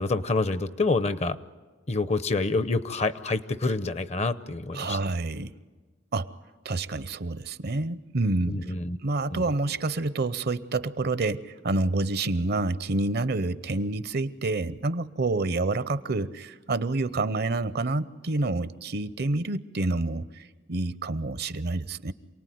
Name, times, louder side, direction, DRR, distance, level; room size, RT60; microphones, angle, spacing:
voice 1, 0.0-1.4 1.9-5.0 8.5-9.0 9.3-9.4, left 3 dB, 35° left, 14 dB, 0.7 m, -27 dB
voice 2, 4.7-5.5 6.1-6.3 6.6-8.5 9.0-22.1, right 2 dB, 55° right, 15 dB, 0.7 m, -28 dB
28.0 x 19.0 x 9.4 m, 1.4 s
head